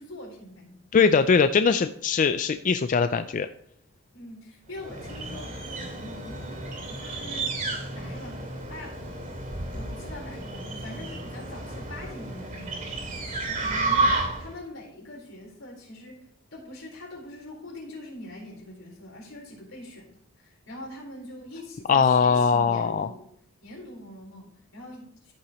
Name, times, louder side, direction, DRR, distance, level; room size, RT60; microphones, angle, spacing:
voice 1, 0.0-0.8 4.1-7.5 7.9-9.0 9.7-16.2 16.5-23.3 23.6-25.3, left 1 dB, 75° left, -1 dB, 4.1 m, -43 dB
voice 2, 0.9-3.5 21.9-23.1, left 5 dB, 40° left, 9 dB, 0.3 m, -21 dB
sound 1, 4.7-14.6, right 2 dB, 40° right, 2.6 m, -31 dB
14.5 x 5.9 x 3.0 m, 0.71 s
head